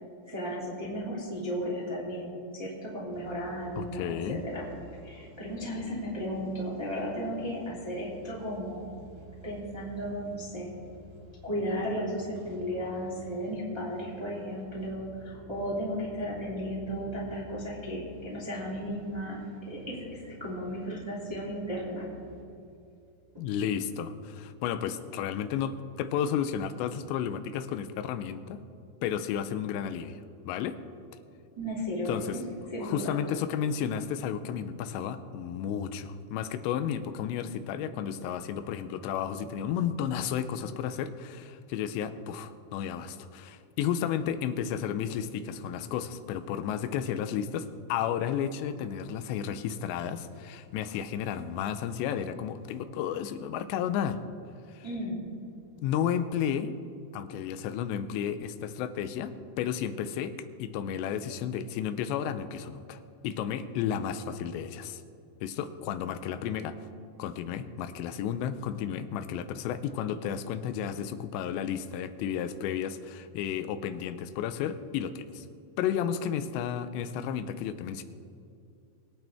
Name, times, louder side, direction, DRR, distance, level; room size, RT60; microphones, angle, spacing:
voice 1, 0.3-4.7 5.0-8.9 9.4-10.7 11.4-19.4 19.7-22.1 31.6-32.4 32.7-33.1 54.8-55.2, equal, 10° right, -6 dB, 1.7 m, -35 dB
sound 1, 3.1-22.4, right 1 dB, 75° right, 3.4 m, -51 dB
voice 2, 3.8-4.4 23.4-28.6 29.0-30.2 30.5-30.8 32.1-32.4 32.8-54.2 54.7-54.9 55.8-56.7 57.1-60.3 60.6-65.0 65.4-66.8 67.2-75.5 75.8-78.0, left 9 dB, 90° left, 11 dB, 2.9 m, -32 dB
23.0 x 9.0 x 3.5 m, 2.6 s
omnidirectional pair, 5.0 m